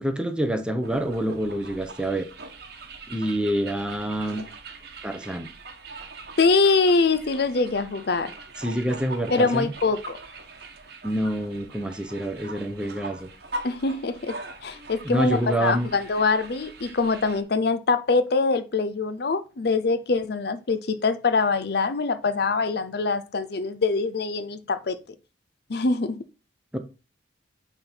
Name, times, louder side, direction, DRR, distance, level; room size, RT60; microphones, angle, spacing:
voice 1, 0.0-2.3 3.1-4.4 5.0-5.5 8.6-9.7 11.0-13.3 15.0-15.9 26.7-26.8, right 1 dB, 5° right, 0.7 m, -27 dB
sound 1, 0.8-17.4, right 3 dB, 50° right, 1.1 m, -42 dB
voice 2, 6.4-8.3 9.3-10.2 13.6-14.3 14.6-25.0 25.7-26.2, left 4 dB, 55° left, 0.5 m, -24 dB
9.2 x 3.5 x 4.4 m
head